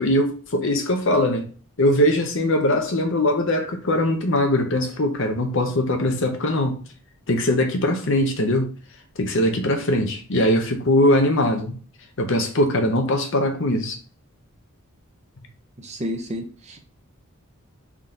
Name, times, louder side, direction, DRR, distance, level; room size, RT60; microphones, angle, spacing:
voice 1, 0.0-1.5 1.8-6.8 7.3-8.7 9.2-11.7 12.2-14.0, left 1 dB, 60° left, 0.8 m, -21 dB
voice 2, 15.8-16.8, equal, 30° right, 0.7 m, -31 dB
3.7 x 2.9 x 3.7 m
head